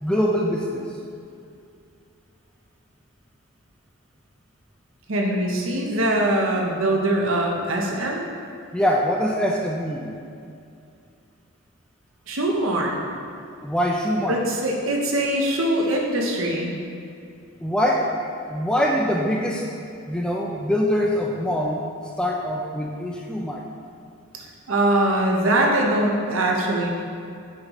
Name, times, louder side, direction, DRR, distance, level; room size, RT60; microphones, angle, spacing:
voice 1, 0.0-0.8 8.7-10.2 13.6-14.4 17.6-18.2 18.5-19.7 20.1-21.8 22.2-23.6, equal, 5° left, -1 dB, 0.3 m, -23 dB
voice 2, 5.1-8.3 12.3-12.9 14.3-16.7 24.7-26.9, right 1 dB, 65° right, 0 dB, 0.8 m, -22 dB
6.5 x 3.1 x 5.5 m, 2.5 s
head